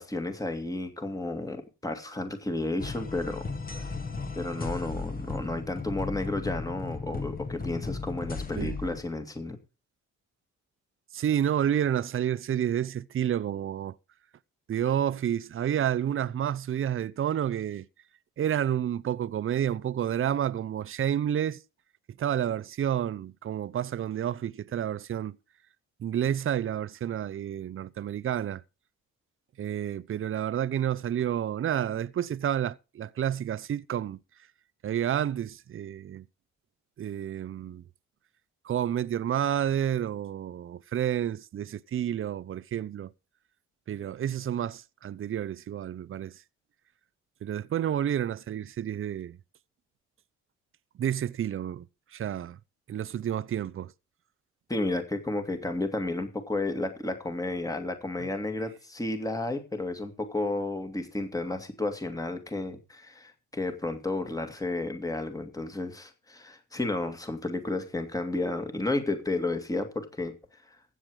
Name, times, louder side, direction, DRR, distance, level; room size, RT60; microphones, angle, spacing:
voice 1, 0.0-3.9 4.3-9.6 54.7-70.3 70.7-70.8, left 2 dB, 10° left, 2.2 m, -32 dB
sound 1, 2.8-9.0, left 4 dB, 30° left, 1.8 m, -35 dB
voice 2, 11.1-13.9 14.7-17.9 18.4-21.6 22.2-25.4 26.0-28.6 29.6-34.2 34.8-36.3 37.0-37.8 38.6-43.1 43.9-46.4 47.4-49.4 51.0-51.9 52.1-52.6 52.9-53.9, right 10 dB, 45° right, 0.6 m, -30 dB
15.5 x 7.9 x 4.9 m
cardioid pair, 90°, 30 cm